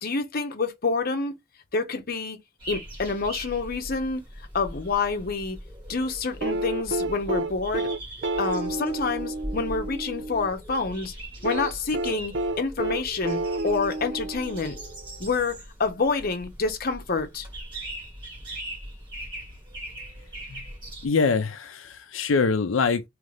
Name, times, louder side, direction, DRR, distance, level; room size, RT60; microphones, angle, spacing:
voice 1, 0.0-1.4 1.7-2.4 2.7-4.2 4.5-5.6 5.9-7.9 8.4-11.1 11.4-14.7 15.2-17.5, left 4 dB, 50° left, 0.8 m, -28 dB
sound 1, 2.6-21.1, right 1 dB, 25° right, 2.5 m, -40 dB
sound 2, 6.4-10.5 11.4-15.0 16.5-16.6, right 2 dB, 65° right, 0.5 m, -30 dB
voice 2, 21.0-23.0, left 4 dB, 80° left, 0.5 m, -24 dB
3.8 x 3.3 x 3.2 m
head